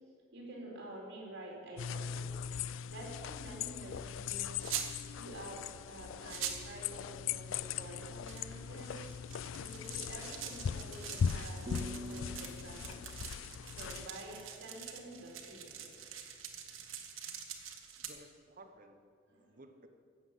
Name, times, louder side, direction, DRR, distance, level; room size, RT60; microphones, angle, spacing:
voice 1, 0.3-2.5 2.9-4.7 5.1-5.6 5.9-9.1 9.3-12.3 12.6-13.0 13.7-16.0 19.3-19.6, right 1 dB, 60° right, -2 dB, 4.3 m, -49 dB
sound 1, 1.8-14.1, left 7 dB, 70° left, 0.3 m, -40 dB
sound 2, 4.6-4.9 6.0-6.1 6.3-6.7 8.0-18.1, right 9 dB, 90° right, 1.4 m, -45 dB
sound 3, 11.7-14.6, equal, 25° right, 0.6 m, -47 dB
voice 2, 18.1-19.9, right 1 dB, 45° right, 7 dB, 0.9 m, -57 dB
14.0 x 8.2 x 7.4 m, 2.3 s
head